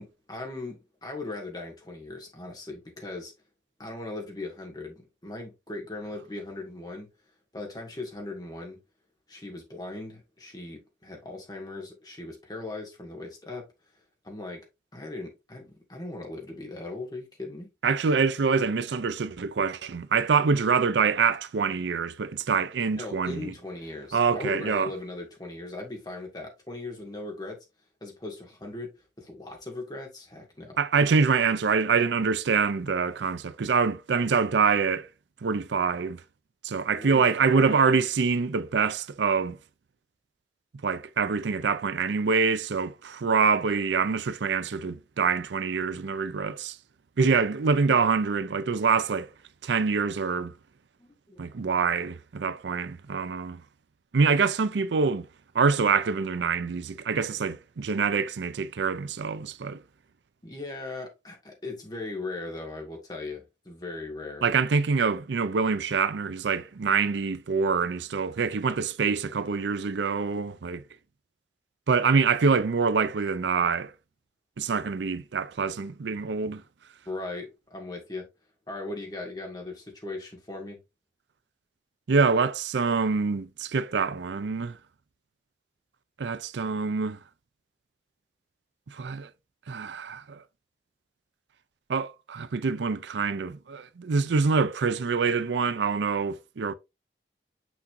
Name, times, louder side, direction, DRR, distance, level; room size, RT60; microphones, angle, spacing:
voice 1, 0.0-3.3 3.8-7.1 7.5-8.8 9.3-13.7 13.9-14.7 14.9-17.7 22.9-27.6 28.0-30.8 37.0-37.8 47.2-47.4 51.0-51.4 60.4-64.4 77.1-78.3 78.7-80.8, left 2 dB, 20° left, 1.9 m, -38 dB
voice 2, 17.8-23.5 24.1-24.9 30.8-35.1 35.4-36.2 36.6-39.6 40.8-46.8 47.2-49.3 49.6-50.5 51.4-53.6 54.1-55.3 55.5-59.8 64.4-70.8 71.9-73.9 74.6-76.6 82.1-84.8 86.2-87.2 88.9-89.3 89.7-90.4 91.9-96.7, right 5 dB, 85° right, 0.5 m, -25 dB
6.2 x 5.8 x 2.6 m
head